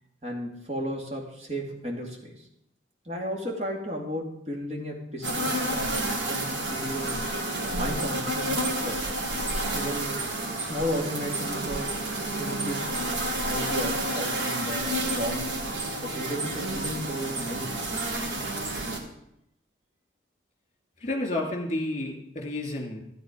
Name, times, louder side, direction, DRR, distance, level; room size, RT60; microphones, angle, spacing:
voice 1, 0.2-2.5 3.0-6.0 6.3-7.2 7.8-9.1 9.7-10.2 10.6-12.0 12.4-15.6 16.0-18.2, equal, 35° right, -1 dB, 2.4 m, -34 dB
sound 1, 5.2-19.0, right 1 dB, 75° right, 2.0 m, -30 dB
voice 2, 21.0-23.0, left 1 dB, 35° left, 2 dB, 2.7 m, -30 dB
12.5 x 9.4 x 5.2 m, 0.78 s
head